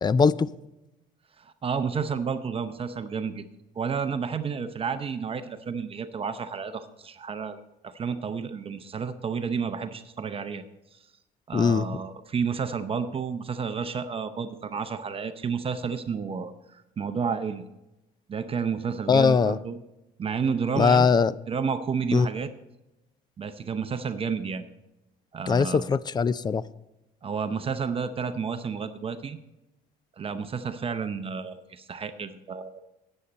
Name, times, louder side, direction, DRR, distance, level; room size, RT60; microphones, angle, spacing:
voice 1, 0.0-0.5 11.5-11.9 19.1-19.6 20.8-21.3 22.1-22.3 25.5-26.6, left 5 dB, 25° left, 0.4 m, -21 dB
voice 2, 1.4-3.5 3.8-10.7 10.9-11.0 11.5-17.6 18.3-19.8 20.2-21.2 21.5-22.5 23.4-24.6 25.3-25.9 27.2-29.4 30.2-32.8, right 6 dB, 35° right, 0.7 m, -31 dB
13.0 x 9.0 x 4.1 m
cardioid pair, 110°, 17 cm